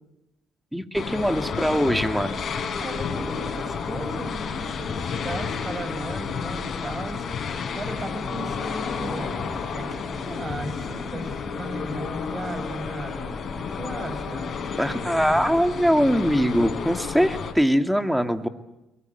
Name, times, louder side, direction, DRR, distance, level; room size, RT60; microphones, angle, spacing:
voice 1, 0.7-2.4 14.7-18.5, equal, 5° right, 8 dB, 2.3 m, -22 dB
sound 1, 0.9-17.5, left 6 dB, 50° left, 3.9 m, -31 dB
voice 2, 2.6-7.3 7.7-14.6 15.1-15.7, right 2 dB, 30° right, 10 dB, 5.7 m, -36 dB
22.5 x 21.0 x 9.4 m, 0.92 s
supercardioid pair, 65°, 0 cm